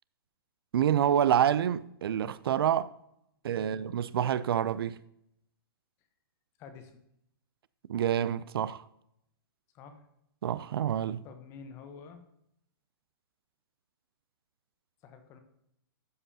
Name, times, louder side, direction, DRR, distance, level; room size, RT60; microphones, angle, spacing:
voice 1, 0.7-2.9 3.4-5.0 7.9-8.8 10.4-11.2, right 9 dB, 80° right, 0.4 m, -27 dB
voice 2, 6.6-7.0 9.7-10.0 11.2-12.2 15.0-15.4, left 5 dB, 20° left, 0.9 m, -48 dB
12.5 x 5.4 x 2.8 m
hypercardioid pair, 165°, 12 cm